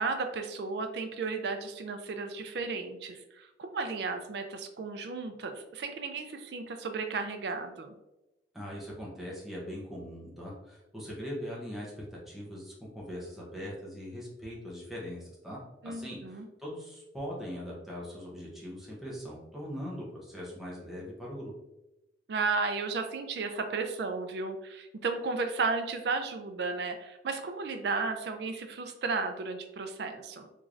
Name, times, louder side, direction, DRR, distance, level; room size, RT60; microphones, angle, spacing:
voice 1, 0.0-7.9 15.8-16.5 22.3-30.5, right 4 dB, 60° right, 6 dB, 0.4 m, -34 dB
voice 2, 8.5-15.6 15.8-21.5, equal, ahead, -6 dB, 0.8 m, -41 dB
3.6 x 3.1 x 2.5 m, 0.96 s
head